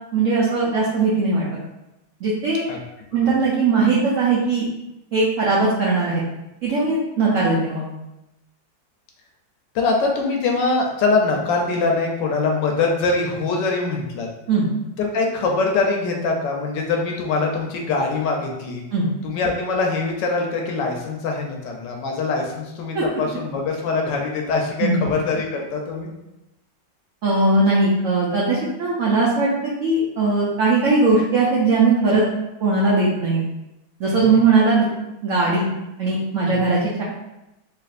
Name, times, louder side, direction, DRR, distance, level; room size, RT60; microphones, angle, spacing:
voice 1, 0.1-1.5 2.2-2.7 3.1-4.7 5.1-6.2 6.6-7.8 14.5-14.7 18.9-19.1 22.9-23.0 24.8-25.0 27.2-29.5 29.8-32.2 32.6-33.4 34.0-34.9 35.2-35.7 36.0-37.0, right 3 dB, 80° right, -6 dB, 0.7 m, -19 dB
voice 2, 9.7-14.3 15.0-18.8 19.2-26.1 34.2-34.4 36.5-36.6, left 3 dB, 75° left, 1 dB, 1.1 m, -23 dB
3.3 x 3.0 x 2.4 m, 0.93 s
omnidirectional pair, 2.1 m